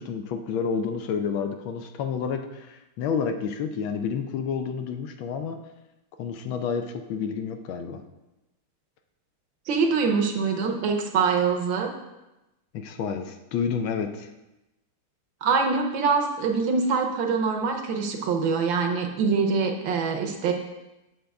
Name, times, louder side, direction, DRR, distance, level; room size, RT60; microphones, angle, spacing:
voice 1, 0.0-5.6 6.2-8.0 12.7-14.3, left 6 dB, 75° left, 6 dB, 1.3 m, -29 dB
voice 2, 9.7-11.9 15.4-20.5, right 5 dB, 70° right, 3 dB, 1.4 m, -24 dB
7.7 x 6.7 x 3.5 m, 0.97 s
omnidirectional pair, 2.3 m